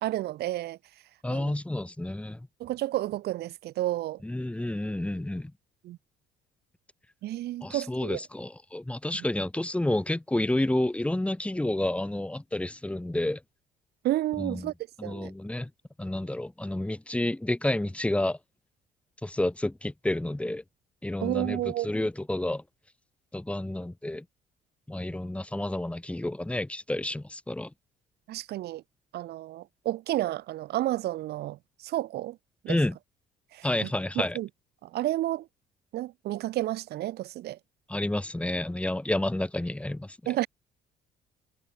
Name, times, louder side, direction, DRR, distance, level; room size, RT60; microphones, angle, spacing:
voice 1, 0.0-0.8 1.3-1.5 2.6-4.2 5.8-6.0 7.2-8.2 9.1-9.2 14.0-14.7 15.0-15.3 21.2-21.9 28.3-28.8 29.1-32.4 32.6-32.8 33.5-33.9 34.3-34.5 34.8-35.5 35.9-37.6 40.3-40.5, right 15 dB, 75° right, 2.2 m, -31 dB
voice 2, 1.2-2.5 4.2-5.5 7.6-13.4 14.4-14.7 15.0-15.7 16.0-18.4 19.2-20.6 21.0-22.6 23.3-24.2 24.9-27.7 32.7-33.0 33.6-34.4 37.9-40.2, left 1 dB, 5° left, 3.5 m, -30 dB
cardioid pair, 110°, 17 cm